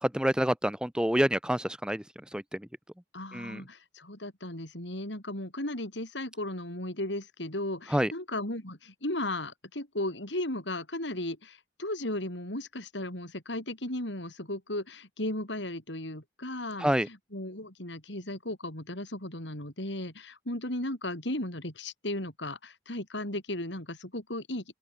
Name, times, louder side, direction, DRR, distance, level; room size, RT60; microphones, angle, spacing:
voice 1, 0.0-2.0 2.3-2.4 3.3-3.6 7.9-8.1 16.8-17.1, equal, 5° right, 0.9 m, -27 dB
voice 2, 3.1-24.6, left 1 dB, 80° left, 6.7 m, -36 dB
open air
head